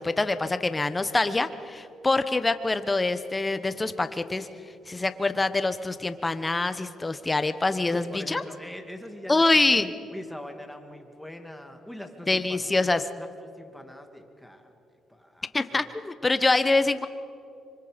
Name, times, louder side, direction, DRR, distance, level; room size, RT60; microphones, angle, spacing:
voice 1, 0.0-4.5 4.9-8.4 9.3-9.9 12.3-13.0 15.5-17.1, left 2 dB, 20° left, 11 dB, 1.1 m, -25 dB
voice 2, 7.8-9.8 10.1-12.7 13.2-14.7 15.1-15.9, left 1 dB, 5° left, 5 dB, 2.4 m, -43 dB
26.0 x 24.5 x 5.2 m, 2.7 s
cardioid pair, 90°, 0 cm